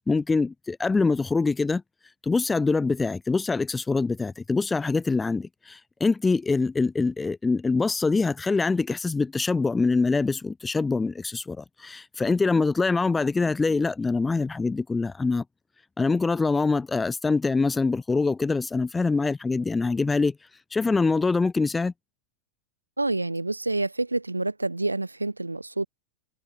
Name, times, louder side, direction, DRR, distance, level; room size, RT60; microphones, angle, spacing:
voice 1, 0.0-1.8 2.2-15.4 16.0-20.4 20.7-21.9, left 4 dB, 10° left, 2.0 m, -24 dB
voice 2, 23.0-25.9, right 2 dB, 85° right, 6.4 m, -28 dB
figure-of-eight pair, 90°, 0 cm